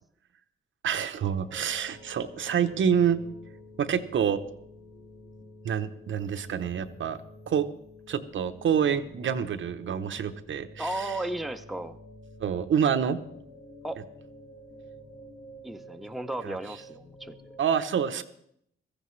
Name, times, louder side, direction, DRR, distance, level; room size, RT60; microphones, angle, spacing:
voice 1, 0.8-3.2 3.8-4.4 5.6-7.2 7.5-7.7 8.1-11.2 12.4-13.2 16.4-16.6 17.6-18.2, right 8 dB, 70° right, 10 dB, 0.8 m, -27 dB
sound 1, 1.3-17.6, left 1 dB, 55° left, 2.3 m, -50 dB
voice 2, 10.8-12.0 13.8-14.0 15.6-17.4, right 1 dB, ahead, 7 dB, 0.6 m, -34 dB
16.5 x 14.5 x 3.2 m, 0.71 s
wide cardioid pair, 115°, 21 cm